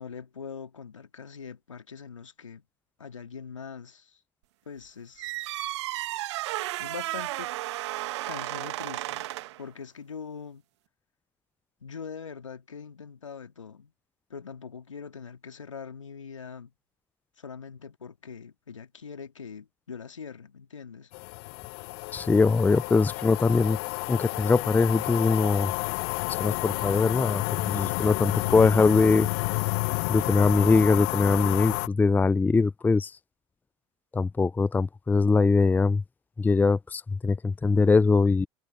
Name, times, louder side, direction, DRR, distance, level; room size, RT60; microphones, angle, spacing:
voice 1, 0.0-2.6 3.0-4.2 4.7-5.3 6.8-7.6 8.3-9.3 9.6-10.6 11.8-13.9 14.3-16.7 17.4-21.1, left 6 dB, 85° left, 2.8 m, -42 dB
sound 1, 5.2-9.6, right 17 dB, 65° right, 1.9 m, -33 dB
sound 2, 21.1-31.9, left 30 dB, 55° left, 0.7 m, -30 dB
voice 2, 22.1-23.8 24.1-25.7 26.4-29.6 30.1-33.1 34.1-36.0 36.4-38.5, left 4 dB, 10° left, 0.6 m, -22 dB
figure-of-eight pair, 80°, 16 cm